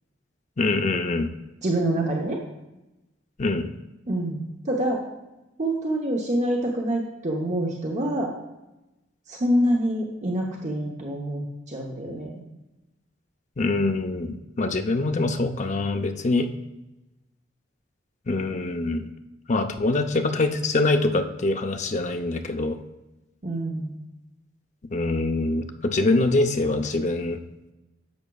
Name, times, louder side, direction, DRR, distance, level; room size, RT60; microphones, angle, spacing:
voice 1, 0.6-1.3 3.4-3.7 13.6-16.5 18.3-19.1 19.5-22.8 24.9-27.4, left 2 dB, 40° left, 6 dB, 0.6 m, -24 dB
voice 2, 1.6-2.4 4.1-4.4 4.7-5.0 5.6-8.3 9.3-12.3 23.4-23.9, right 1 dB, 40° right, 0 dB, 0.9 m, -26 dB
10.5 x 7.3 x 2.3 m, 0.99 s
head